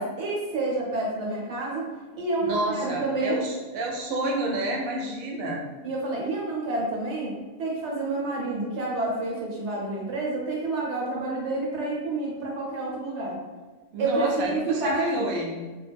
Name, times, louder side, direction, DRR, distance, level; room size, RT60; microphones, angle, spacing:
voice 1, 0.0-1.9 2.2-3.4 5.8-7.3 7.6-13.4 14.0-15.3, right 2 dB, 65° right, -3 dB, 0.9 m, -29 dB
voice 2, 2.4-5.6 13.9-15.6, right 1 dB, 90° right, 0 dB, 1.0 m, -29 dB
2.3 x 2.0 x 3.3 m, 1.3 s
omnidirectional pair, 1.4 m